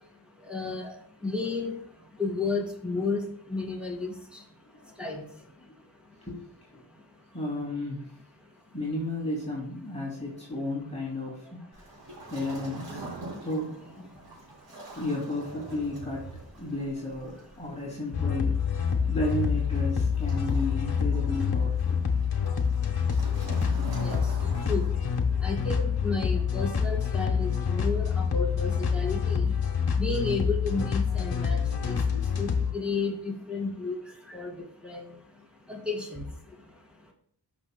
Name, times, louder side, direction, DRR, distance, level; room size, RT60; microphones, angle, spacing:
voice 1, 0.5-0.9 1.2-1.7 2.2-4.1 5.0-5.2 24.0-24.2 24.7-24.8 25.4-29.5 30.0-31.6 31.8-33.9 34.3-34.5 34.8-35.0 35.7-36.2, left 4 dB, ahead, -2 dB, 2.2 m, -32 dB
voice 2, 7.3-8.0 8.7-11.6 12.3-13.0 13.4-13.7 15.0-16.3 16.6-18.6 19.1-22.1 27.3-27.4 27.7-27.9 29.6-30.0 31.6-31.8 32.5-32.6, left 1 dB, 15° left, -6 dB, 2.6 m, -33 dB
Waves surf, 11.7-25.4, right 2 dB, 85° right, 3.0 m, -44 dB
sound 1, 18.1-32.7, left 6 dB, 60° left, 1.3 m, -27 dB
12.5 x 6.2 x 2.2 m, 0.64 s
wide cardioid pair, 110°, 42 cm